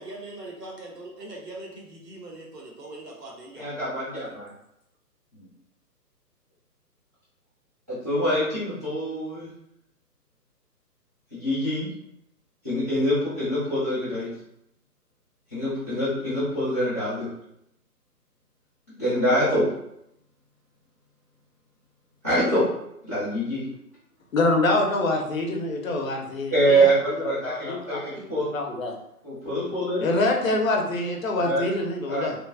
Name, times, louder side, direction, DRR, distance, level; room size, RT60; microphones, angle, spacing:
voice 1, 0.0-3.7, right 2 dB, 75° right, -1 dB, 1.0 m, -41 dB
voice 2, 3.6-4.3 7.9-9.5 11.3-11.9 12.6-14.3 15.5-17.3 19.0-19.7 22.2-22.7 23.0-23.6 26.5-28.5 29.2-30.1 31.4-31.6 32.1-32.3, right 1 dB, 10° right, -14 dB, 0.6 m, -25 dB
voice 3, 24.3-28.0 28.5-28.9 30.0-32.4, left 2 dB, 55° left, 2 dB, 0.6 m, -25 dB
3.0 x 2.2 x 2.3 m, 0.78 s
figure-of-eight pair, 140°, 48 cm